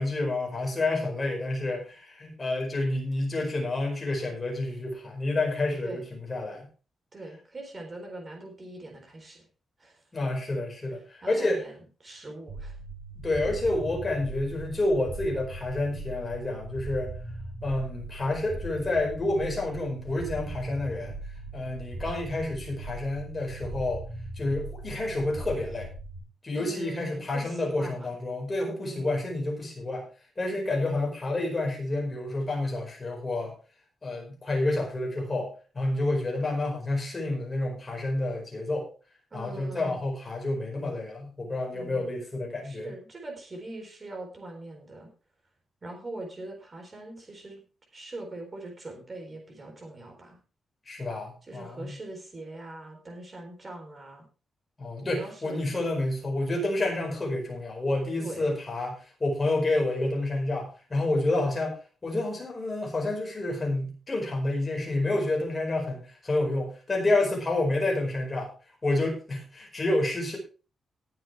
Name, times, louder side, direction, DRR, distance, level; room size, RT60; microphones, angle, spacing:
voice 1, 0.0-6.6 10.1-11.6 13.2-17.1 17.6-21.1 21.5-24.0 24.4-25.9 26.4-30.1 30.4-33.5 34.0-35.5 35.7-38.9 39.3-42.9 50.9-51.9 54.8-61.7 62.0-68.5 68.8-70.4, left 2 dB, 20° left, 0 dB, 4.9 m, -29 dB
voice 2, 7.1-9.5 9.8-10.0 11.2-12.8 26.6-28.1 28.8-29.1 30.5-30.6 39.3-40.0 41.7-42.1 42.6-45.1 45.8-47.6 47.9-50.4 51.4-54.2 55.0-55.7 58.2-58.5 67.1-67.4, right 2 dB, 25° right, 2 dB, 3.7 m, -42 dB
sound 1, 12.5-26.2, right 2 dB, 55° right, 4.8 m, -39 dB
19.0 x 7.7 x 3.4 m, 0.35 s
wide cardioid pair, 175°, 0 cm